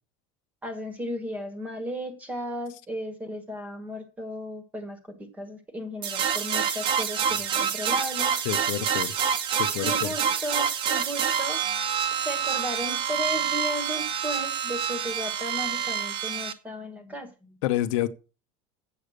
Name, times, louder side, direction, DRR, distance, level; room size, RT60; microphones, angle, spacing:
voice 1, 0.6-8.3 9.8-11.6 12.2-17.6, equal, 10° right, 1.3 m, -35 dB
sound 1, 6.0-16.5, right 8 dB, 30° right, 0.7 m, -27 dB
voice 2, 8.4-9.1 9.5-10.1 17.6-18.1, left 14 dB, 70° left, 0.8 m, -28 dB
7.7 x 6.8 x 6.4 m
cardioid pair, 180°, 17 cm